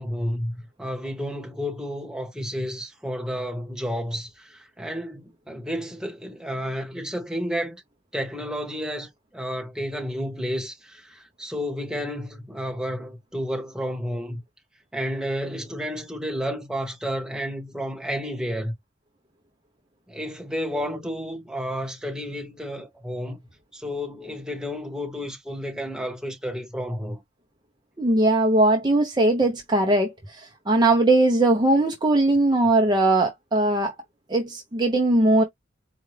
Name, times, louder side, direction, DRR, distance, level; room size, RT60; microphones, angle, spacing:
voice 1, 0.0-7.8 8.1-14.4 14.9-18.7 20.1-23.4 23.7-27.2, equal, 5° right, 1.3 m, -31 dB
voice 2, 28.0-33.9 34.3-35.4, right 2 dB, 20° right, 0.7 m, -20 dB
4.5 x 2.3 x 3.3 m
head